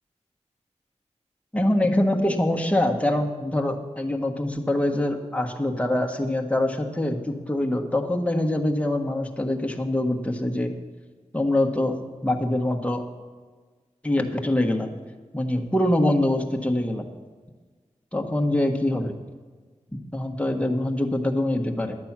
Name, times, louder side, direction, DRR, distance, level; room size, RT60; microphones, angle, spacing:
voice 1, 1.5-10.7 11.3-12.0 12.2-13.0 14.0-14.9 15.3-17.0 18.1-19.1 20.1-22.0, left 1 dB, 10° left, 2 dB, 1.4 m, -24 dB
11.0 x 8.7 x 6.0 m, 1.4 s
cardioid pair, 50°, 13 cm